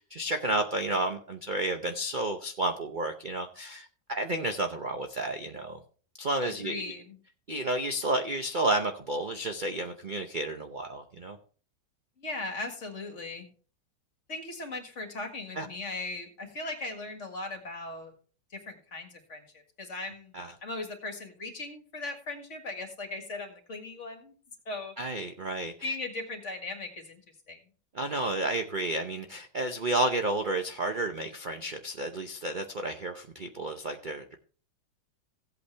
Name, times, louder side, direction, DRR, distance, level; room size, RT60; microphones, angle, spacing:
voice 1, 0.1-5.8 6.2-6.8 7.5-11.4 15.6-15.7 20.3-20.5 25.0-25.9 27.9-34.4, right 2 dB, 45° right, 5 dB, 0.6 m, -31 dB
voice 2, 6.6-7.2 12.2-13.5 14.3-18.1 18.5-20.3 20.6-24.3 24.7-24.9 25.8-27.2 27.5-27.6, left 2 dB, 40° left, 5 dB, 2.1 m, -38 dB
16.0 x 8.4 x 3.3 m, 0.41 s
omnidirectional pair, 1.9 m